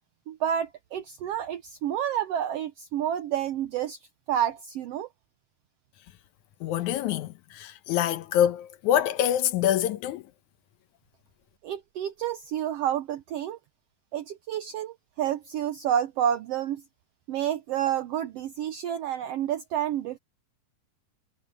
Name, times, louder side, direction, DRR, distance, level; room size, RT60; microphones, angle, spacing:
voice 1, 0.3-4.0 4.3-5.1 11.6-13.6 14.1-16.8 17.3-20.2, right 10 dB, 80° right, 1.4 m, -29 dB
voice 2, 6.6-10.3, left 11 dB, 75° left, 2.2 m, -25 dB
omnidirectional pair, 3.6 m